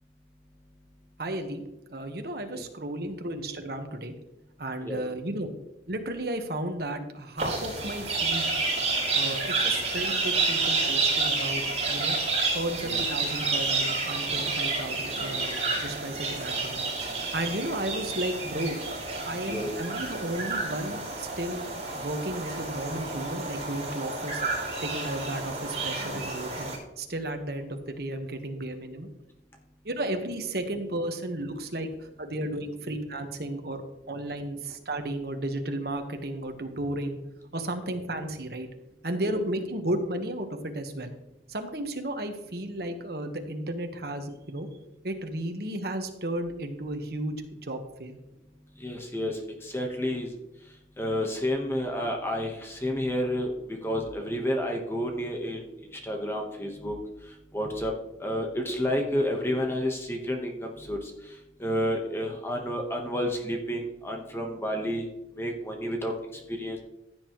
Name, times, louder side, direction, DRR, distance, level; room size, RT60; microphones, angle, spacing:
voice 1, 1.2-1.6 1.9-4.1 4.6-5.5 5.9-8.5 9.1-12.2 12.5-16.8 17.3-18.8 19.2-21.6 21.9-24.4 24.8-29.1 29.8-31.9 32.2-37.2 37.5-38.7 39.0-41.1 41.5-44.7 45.0-48.2, right 1 dB, 60° right, 5 dB, 1.3 m, -33 dB
sound 1, 7.4-26.8, right 3 dB, 35° right, 4.7 m, -30 dB
voice 2, 48.7-50.3 50.6-57.9 58.2-65.1 65.3-66.8, equal, 15° left, 2 dB, 1.2 m, -31 dB
15.5 x 9.1 x 3.1 m, 0.95 s
head